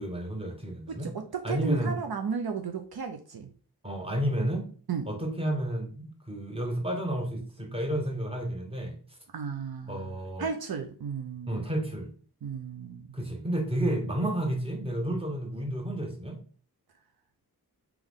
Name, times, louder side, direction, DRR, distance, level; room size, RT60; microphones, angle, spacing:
voice 1, 0.0-1.1 1.4-2.0 3.8-4.7 5.1-8.9 9.9-10.4 11.5-12.1 13.1-16.4, right 1 dB, 15° right, 1 dB, 1.2 m, -31 dB
voice 2, 0.9-3.5 4.9-5.1 9.3-11.7 12.4-13.2, right 6 dB, 70° right, 5 dB, 0.6 m, -34 dB
3.6 x 3.0 x 3.5 m, 0.43 s
wide cardioid pair, 55°, 39 cm